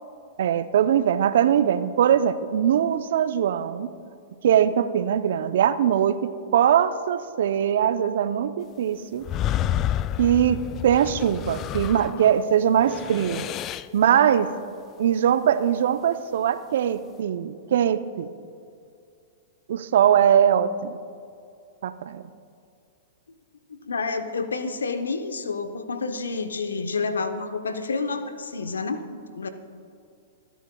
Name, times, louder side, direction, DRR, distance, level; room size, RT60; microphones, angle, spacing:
voice 1, 0.4-3.9 4.4-9.3 10.2-13.4 13.9-14.5 15.0-18.3 19.7-21.0 21.8-22.2, right 9 dB, 65° right, 12 dB, 0.6 m, -21 dB
sound 1, 9.2-12.4 12.8-14.0, left 11 dB, 35° left, 0.3 m, -29 dB
voice 2, 23.7-29.5, left 4 dB, 80° left, 9 dB, 0.9 m, -29 dB
25.5 x 10.0 x 2.3 m, 2.4 s
hypercardioid pair, 105°, 0 cm